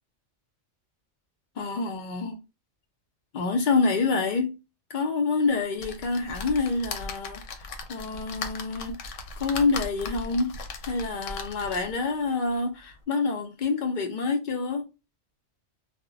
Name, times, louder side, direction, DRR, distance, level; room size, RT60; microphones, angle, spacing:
voice 1, 1.6-2.4 3.3-4.6 4.9-10.6 10.8-14.9, left 4 dB, 55° left, 0.5 m, -27 dB
sound 1, 5.8-12.0 12.6-12.7 12.9-13.0, left 4 dB, 85° left, 0.9 m, -38 dB
2.1 x 2.0 x 3.7 m
omnidirectional pair, 1.2 m